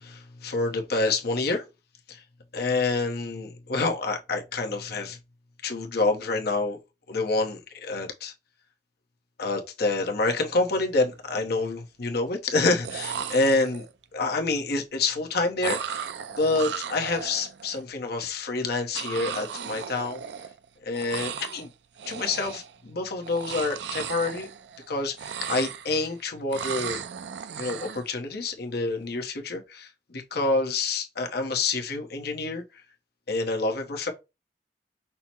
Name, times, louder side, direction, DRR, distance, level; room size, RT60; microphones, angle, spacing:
voice 1, 0.0-1.6 2.1-2.2 2.5-5.2 5.6-6.8 7.1-8.3 9.4-13.8 14.1-16.1 16.3-20.2 20.8-21.7 22.1-24.5 24.9-27.0 27.6-32.6 33.3-34.1, left 3 dB, 60° left, 0.9 m, -27 dB
sound 1, 10.4-10.6 10.9-11.5 12.6-12.7 12.8-14.0 15.6-17.8 18.9-20.7 20.9-21.7 22.0-22.8 23.2-24.9 25.1-26.1 26.5-28.1, right 7 dB, 70° right, 0.4 m, -36 dB
5.7 x 2.1 x 4.3 m
head